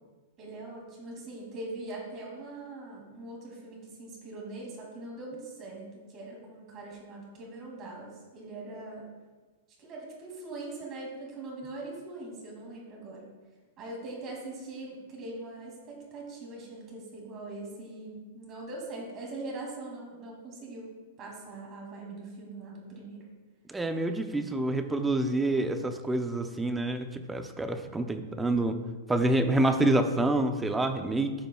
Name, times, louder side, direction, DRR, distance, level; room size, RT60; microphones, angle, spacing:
voice 1, 0.4-9.1 9.8-13.3 13.8-23.3, right 2 dB, 25° right, -2 dB, 2.4 m, -42 dB
voice 2, 23.7-28.8 29.1-31.3, right 2 dB, 5° right, 7 dB, 0.5 m, -27 dB
13.0 x 5.3 x 2.3 m, 1.3 s
supercardioid pair, 155°, 0 cm